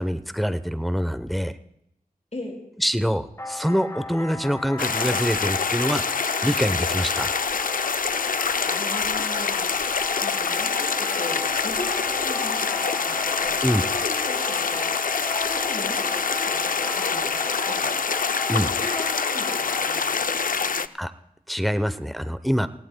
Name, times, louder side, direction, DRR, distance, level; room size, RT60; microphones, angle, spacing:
voice 1, 0.0-1.5 2.8-7.3 13.6-13.8 18.5-18.7 21.0-21.1 21.5-22.7, equal, ahead, 11 dB, 0.8 m, -25 dB
sound 1, 3.4-20.2, left 2 dB, 20° left, 1.2 m, -37 dB
sound 2, 4.8-20.9, left 5 dB, 60° left, 0.5 m, -25 dB
voice 2, 8.7-9.7 10.2-14.9 15.4-17.9 18.6-20.8, left 1 dB, 45° left, 0 dB, 5.4 m, -38 dB
29.0 x 18.0 x 2.3 m, 0.80 s
wide cardioid pair, 45°, 16 cm